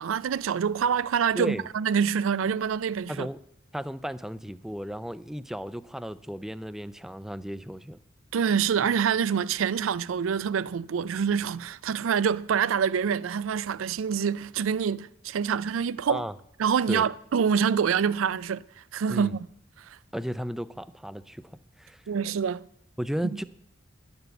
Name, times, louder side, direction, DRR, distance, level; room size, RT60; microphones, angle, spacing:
voice 1, 0.0-3.3 8.3-16.2 16.6-19.3 19.8-20.0 22.1-22.6, right 7 dB, 80° right, 0.4 m, -26 dB
voice 2, 1.3-1.7 3.1-3.4 3.7-8.0 16.1-16.3 16.9-17.0 19.1-19.3 20.1-22.0 23.0-23.4, equal, ahead, 0.4 m, -34 dB
11.0 x 7.0 x 7.8 m
head